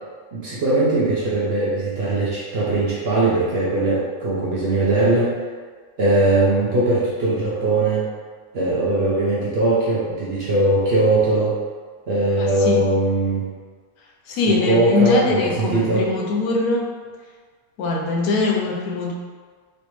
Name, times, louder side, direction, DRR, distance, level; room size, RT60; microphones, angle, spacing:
voice 1, 0.3-5.4 6.0-8.1 8.5-11.6 12.1-13.5 14.5-16.1, right 2 dB, 60° right, -7 dB, 0.7 m, -20 dB
voice 2, 12.4-12.8 14.3-16.8 17.8-19.1, left 3 dB, 80° left, -1 dB, 1.1 m, -21 dB
3.2 x 2.7 x 3.0 m, 1.5 s
omnidirectional pair, 1.5 m